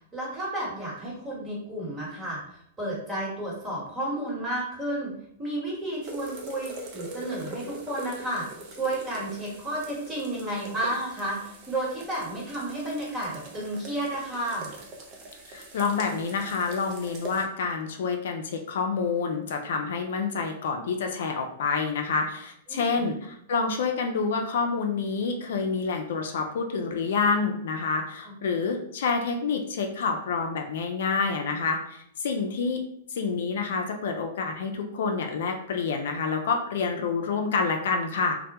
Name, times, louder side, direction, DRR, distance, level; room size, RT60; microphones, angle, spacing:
voice 1, 0.1-5.1 5.4-14.7 22.7-23.1 28.2-28.3, right 1 dB, 20° right, -5 dB, 1.2 m, -32 dB
sound 1, 6.0-17.4, right 1 dB, 45° right, 0.6 m, -43 dB
voice 2, 15.5-32.8 33.1-38.4, left 5 dB, 70° left, 3 dB, 0.4 m, -28 dB
2.1 x 2.1 x 2.8 m, 0.71 s
hypercardioid pair, 115°, 0 cm